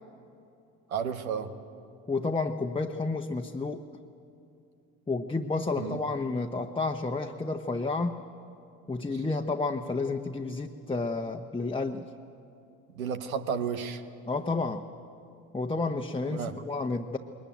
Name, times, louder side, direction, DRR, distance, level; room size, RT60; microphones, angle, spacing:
voice 1, 0.9-1.5 5.8-6.0 12.9-14.0 16.3-16.6, right 7 dB, 85° right, 10 dB, 0.9 m, -32 dB
voice 2, 2.1-3.8 5.1-8.3 8.9-12.1 14.3-14.9 15.5-17.2, left 3 dB, 15° left, 3 dB, 1.0 m, -31 dB
21.5 x 20.0 x 9.2 m, 2.7 s
figure-of-eight pair, 45°, 40 cm